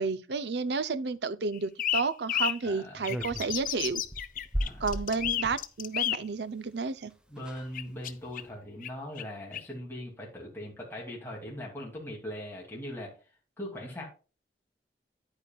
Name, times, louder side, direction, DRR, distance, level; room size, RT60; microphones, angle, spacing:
voice 1, 0.0-4.0 4.8-7.1, right 4 dB, 75° right, 0.6 m, -31 dB
sound 1, 1.5-2.6 3.0-6.2 7.7-8.4 8.8-8.9 9.2-9.3 9.5-9.6, left 11 dB, 50° left, 0.6 m, -31 dB
voice 2, 2.6-3.1 4.5-4.9 7.3-13.1 13.6-14.1, left 1 dB, 15° left, 2.6 m, -40 dB
sound 2, 3.1-5.6 6.8-6.9 7.1-7.2 7.4-7.7 8.2-8.5, equal, 5° right, 0.8 m, -37 dB
9.7 x 8.8 x 2.4 m
head